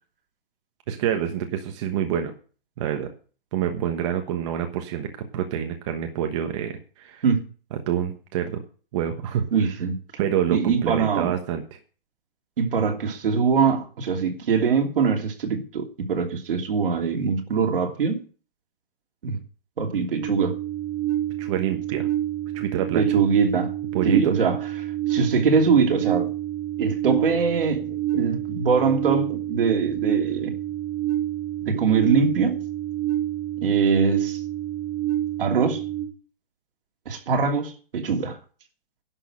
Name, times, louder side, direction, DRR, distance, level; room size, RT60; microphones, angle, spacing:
voice 1, 0.9-2.3 2.8-3.1 3.5-7.2 7.9-8.6 8.9-9.5 10.2-11.6 21.4-22.1 22.5-23.1 23.9-24.4, right 9 dB, 30° right, 1.3 m, -27 dB
voice 2, 9.5-10.0 10.5-11.3 12.6-18.2 19.2-19.4 19.8-20.5 22.9-23.7 24.0-26.3 26.8-30.6 31.6-32.6 33.6-34.4 35.4-35.9 37.0-38.4, right 5 dB, 70° right, 2.9 m, -23 dB
sound 1, 20.2-36.0, right 13 dB, 50° right, 4.4 m, -28 dB
11.5 x 6.5 x 8.7 m
hypercardioid pair, 165°, 29 cm